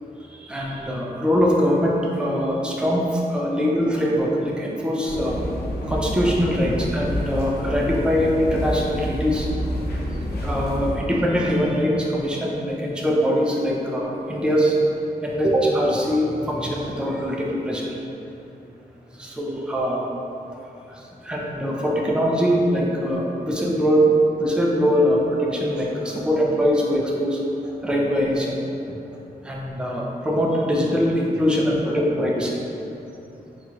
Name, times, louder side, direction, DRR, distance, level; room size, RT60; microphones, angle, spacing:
voice 1, 0.3-5.4 5.8-9.5 10.4-14.8 15.2-17.9 19.1-20.1 20.9-28.6 28.9-29.0 29.4-32.5, equal, 5° right, -3 dB, 0.4 m, -22 dB
sound 1, 5.0-10.9, equal, 80° left, 0.6 m, -28 dB
4.1 x 2.4 x 2.8 m, 2.8 s
wide cardioid pair, 120°, 16 cm